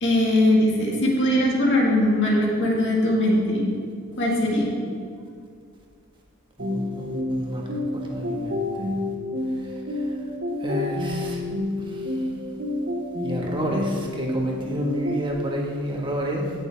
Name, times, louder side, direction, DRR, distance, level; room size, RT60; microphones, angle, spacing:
voice 1, 0.0-3.7 4.2-4.7, left 1 dB, 55° left, -3 dB, 2.1 m, -20 dB
voice 2, 6.6-7.6 7.9-8.9 9.5-10.1 10.6-11.4 11.8-12.3 13.2-16.5, equal, 20° right, -1 dB, 1.6 m, -30 dB
sound 1, 6.6-15.3, left 1 dB, 60° right, 2.2 m, -29 dB
17.5 x 6.6 x 3.5 m, 2.3 s
head